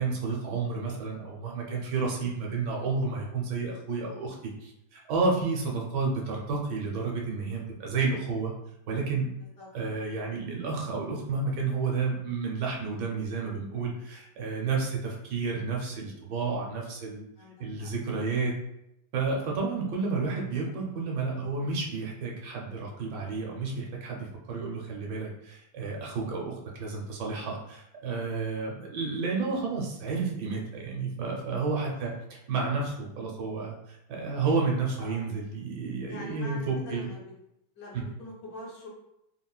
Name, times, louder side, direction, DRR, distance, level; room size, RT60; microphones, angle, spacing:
voice 1, 0.0-4.3 4.6-8.5 8.9-9.3 9.7-17.2 17.6-18.6 19.1-37.1 37.9-38.0, right 4 dB, 75° right, -1 dB, 1.2 m, -31 dB
voice 2, 17.4-17.9 35.0-35.2 36.1-37.3 37.8-38.9, left 1 dB, 65° left, -5 dB, 1.0 m, -44 dB
3.7 x 2.0 x 2.3 m, 0.83 s
omnidirectional pair, 2.0 m